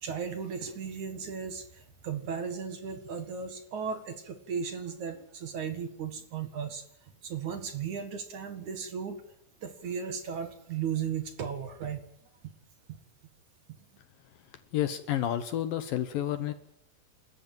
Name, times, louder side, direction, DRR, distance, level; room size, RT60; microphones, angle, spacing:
voice 1, 0.0-6.8 7.2-9.2 9.6-12.0, right 6 dB, 55° right, 8 dB, 2.7 m, -36 dB
voice 2, 14.7-16.5, left 11 dB, 70° left, 11 dB, 2.3 m, -30 dB
28.5 x 13.5 x 9.2 m, 0.73 s
omnidirectional pair, 4.9 m